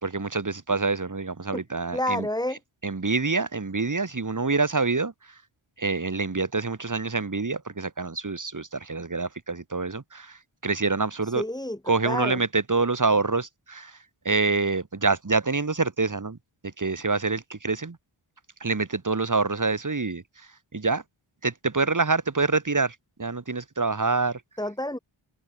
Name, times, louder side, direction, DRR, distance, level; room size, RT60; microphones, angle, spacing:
voice 1, 0.0-2.3 2.8-5.1 5.8-10.4 10.6-11.4 11.9-13.9 14.2-16.4 16.6-18.0 18.6-20.2 20.7-21.0 21.4-24.4, right 3 dB, 35° right, 3.1 m, -26 dB
voice 2, 1.9-2.6 11.2-11.8 12.0-12.4 24.6-25.0, left 1 dB, 10° left, 2.6 m, -29 dB
open air
wide cardioid pair, 60°, 50 cm